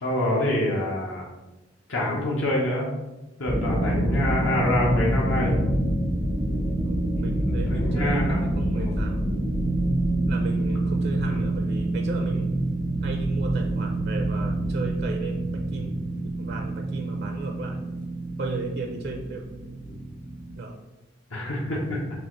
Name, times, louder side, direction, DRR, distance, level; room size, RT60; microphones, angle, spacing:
voice 1, 0.0-1.2 1.9-2.9 3.4-5.6 7.5-8.4 8.7-9.0 11.2-11.4 21.3-22.0, left 1 dB, 80° left, -4 dB, 1.0 m, -26 dB
sound 1, 3.5-20.5, right 1 dB, 40° left, 0.8 m, -27 dB
voice 2, 6.8-9.3 10.3-12.6 13.0-16.0 16.4-17.8 18.4-19.5 20.6-20.8, right 3 dB, 60° right, 3 dB, 0.4 m, -35 dB
6.3 x 2.4 x 3.1 m, 1.1 s
head